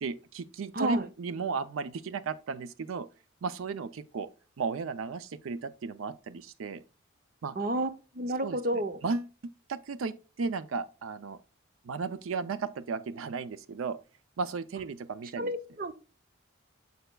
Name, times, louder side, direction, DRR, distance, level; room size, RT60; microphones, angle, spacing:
voice 1, 0.0-3.1 3.4-4.3 4.6-6.8 7.4-7.5 8.4-8.6 9.0-11.4 11.8-14.0 14.4-15.5, right 4 dB, 85° right, 0.4 m, -34 dB
voice 2, 0.7-1.1 7.6-9.0 15.4-15.9, right 1 dB, 45° right, 0.7 m, -31 dB
6.7 x 6.7 x 2.2 m
head